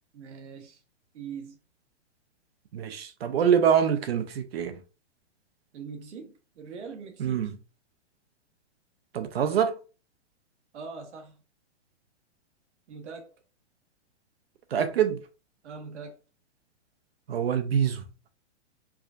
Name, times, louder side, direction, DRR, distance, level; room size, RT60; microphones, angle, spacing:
voice 1, 0.1-0.8 1.1-1.6 5.7-7.5 10.7-11.4 12.9-13.3 15.6-16.2, right 5 dB, 75° right, 1.2 m, -42 dB
voice 2, 2.7-4.8 7.2-7.6 9.1-9.8 14.7-15.2 17.3-18.0, right 8 dB, 55° right, 0.6 m, -25 dB
4.7 x 2.6 x 2.5 m
hypercardioid pair, 175°, 35 cm